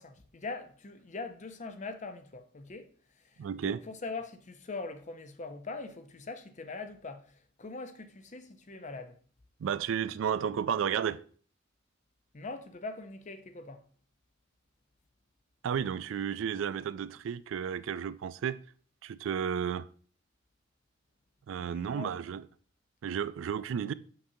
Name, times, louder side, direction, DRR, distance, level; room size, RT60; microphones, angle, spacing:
voice 1, 0.0-2.9 3.2-9.2 12.3-13.8 21.6-22.2, left 3 dB, 40° left, 0.6 m, -42 dB
voice 2, 3.4-3.8 9.6-11.2 15.6-18.6 19.0-19.9 21.5-22.4 23.0-23.9, right 8 dB, 80° right, 0.3 m, -32 dB
6.6 x 5.7 x 2.7 m
head